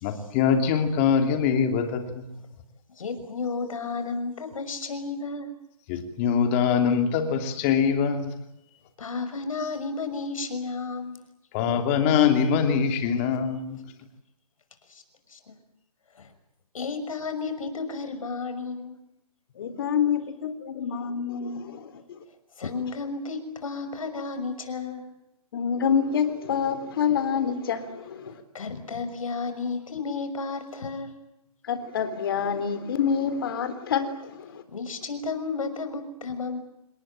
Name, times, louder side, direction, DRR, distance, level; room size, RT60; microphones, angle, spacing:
voice 1, 0.0-2.4 5.9-8.3 11.5-13.8, left 7 dB, 20° left, 2.9 m, -23 dB
voice 2, 3.0-5.5 9.0-11.2 14.9-15.0 15.3-15.5 16.1-16.3 16.7-19.0 22.6-25.1 28.5-31.2 34.7-36.6, left 4 dB, 60° left, 6.1 m, -32 dB
voice 3, 19.6-22.2 25.5-28.4 31.6-34.6, left 7 dB, 35° left, 3.5 m, -27 dB
28.0 x 19.5 x 8.9 m
hypercardioid pair, 165°, 20 cm